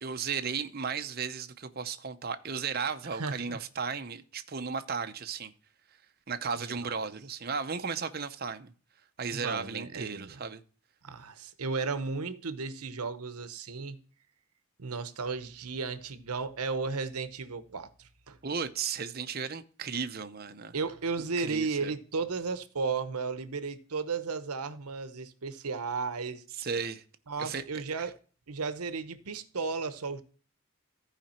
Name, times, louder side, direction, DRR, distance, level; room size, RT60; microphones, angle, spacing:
voice 1, 0.0-5.5 6.3-8.7 9.2-10.6 18.4-20.7 21.4-21.9 26.6-27.0 27.4-27.8, right 5 dB, 40° right, 0.7 m, -35 dB
voice 2, 3.0-3.6 6.6-6.9 9.3-10.4 11.0-14.0 14.8-18.4 20.7-26.4 27.3-28.2 28.5-30.2, right 4 dB, 85° right, 0.9 m, -34 dB
14.5 x 5.0 x 4.3 m
head